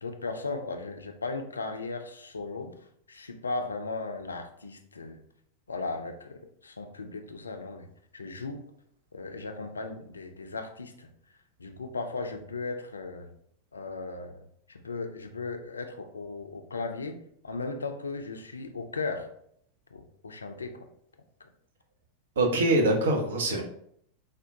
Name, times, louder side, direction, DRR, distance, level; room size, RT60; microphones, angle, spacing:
voice 1, 0.0-2.7 3.1-5.2 5.7-7.9 8.1-8.6 9.1-11.1 11.6-13.3 13.7-14.4 14.7-19.3 19.9-20.9 23.5-23.6, left 3 dB, 75° left, 6 dB, 0.3 m, -36 dB
voice 2, 22.4-23.6, right 2 dB, 65° right, 2 dB, 0.6 m, -24 dB
3.6 x 2.1 x 2.6 m, 0.68 s
figure-of-eight pair, 90°, 0 cm